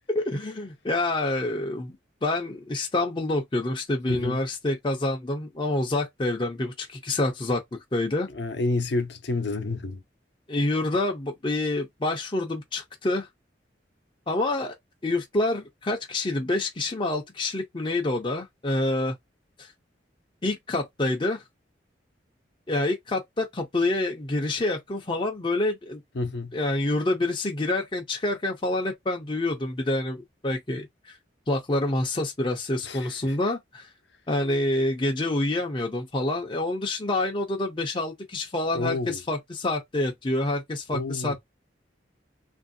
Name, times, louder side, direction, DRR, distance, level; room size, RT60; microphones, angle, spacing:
voice 1, 0.1-2.0 2.2-7.6 7.9-8.3 10.5-13.3 14.3-14.7 15.0-19.2 19.6-19.7 20.4-21.4 22.7-26.0 26.5-31.2 31.5-33.9 34.3-41.3, left 2 dB, 25° left, 0.5 m, -27 dB
voice 2, 4.1-4.4 8.3-10.0 26.1-26.6 32.8-33.4 38.7-39.2 40.9-41.4, left 2 dB, 60° left, 0.7 m, -30 dB
3.0 x 2.6 x 2.5 m
head